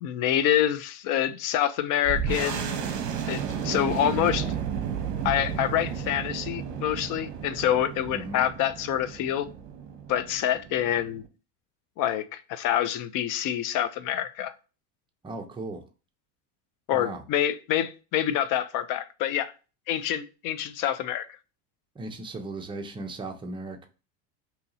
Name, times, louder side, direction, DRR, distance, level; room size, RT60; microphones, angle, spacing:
voice 1, 0.0-2.9 3.3-4.5 5.2-9.5 10.1-11.2 12.0-14.5 16.9-19.5 19.9-21.3, left 11 dB, 50° left, 0.5 m, -27 dB
sound 1, 2.1-11.3, right 7 dB, 40° right, 0.8 m, -33 dB
voice 2, 8.1-8.4 15.2-15.8 16.9-17.2 22.0-23.9, right 2 dB, 10° right, 0.5 m, -37 dB
2.8 x 2.7 x 4.0 m
supercardioid pair, 120°, 44 cm